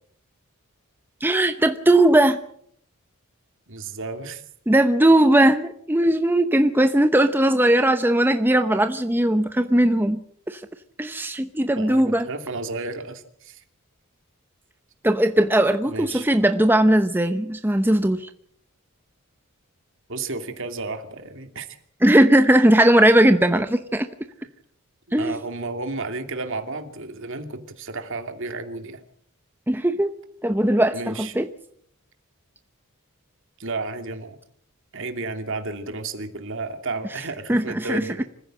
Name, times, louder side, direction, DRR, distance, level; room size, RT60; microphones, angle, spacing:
voice 1, 1.2-2.4 4.7-10.2 10.5-10.6 11.0-12.3 15.0-18.3 22.0-24.1 25.1-25.4 29.7-30.1 30.4-31.5 37.5-38.0, right 1 dB, 10° right, 8 dB, 0.8 m, -18 dB
voice 2, 3.7-4.4 11.8-13.6 15.9-16.3 20.1-21.7 24.4-24.5 25.1-29.0 30.9-31.3 33.6-34.4 34.9-38.2, right 3 dB, 60° right, 7 dB, 2.6 m, -32 dB
25.5 x 15.0 x 7.7 m, 0.67 s
head